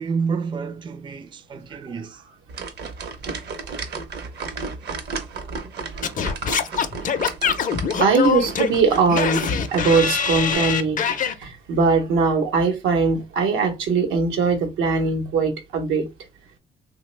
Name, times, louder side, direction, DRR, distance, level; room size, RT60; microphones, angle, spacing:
voice 1, 0.0-2.2, right 5 dB, 25° right, 0.4 m, -29 dB
sound 1, 2.5-10.6, right 4 dB, 60° right, 0.7 m, -34 dB
Singing / Scratching (performance technique), 6.0-11.3, left 7 dB, 40° left, 0.4 m, -24 dB
voice 2, 8.0-9.4 9.7-11.1 11.4-16.1, right 4 dB, 85° right, 0.9 m, -20 dB
2.9 x 2.1 x 3.2 m
cardioid pair, 90°, 20 cm